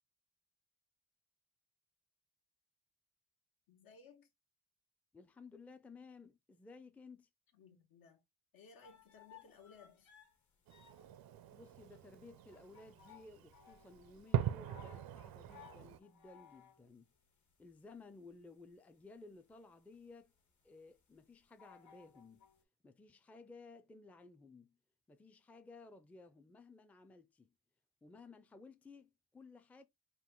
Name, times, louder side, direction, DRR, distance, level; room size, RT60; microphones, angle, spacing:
voice 1, 3.7-4.3 7.5-8.2 8.5-10.1, left 4 dB, 80° left, 1.4 m, -60 dB
voice 2, 5.1-7.3 11.5-17.1 17.6-20.3 20.6-22.4 22.8-24.8 25.1-27.5 28.0-29.8, left 3 dB, 5° left, 0.4 m, -57 dB
sound 1, 8.8-22.6, left 9 dB, 55° left, 1.4 m, -62 dB
Fireworks, 10.7-16.0, right 11 dB, 90° right, 0.5 m, -42 dB
3.7 x 2.5 x 3.6 m
cardioid pair, 115°, 35 cm